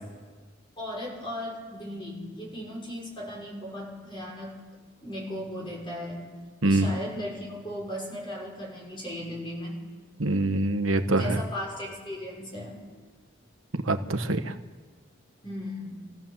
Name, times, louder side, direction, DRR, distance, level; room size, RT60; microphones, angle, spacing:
voice 1, 0.8-4.5 5.0-6.3 6.7-9.8 11.2-12.8 15.4-16.0, left 1 dB, 25° left, -2 dB, 5.8 m, -36 dB
voice 2, 6.6-6.9 10.2-11.4 13.8-14.5, right 2 dB, 90° right, 8 dB, 1.3 m, -24 dB
24.5 x 15.0 x 7.3 m, 1.5 s
head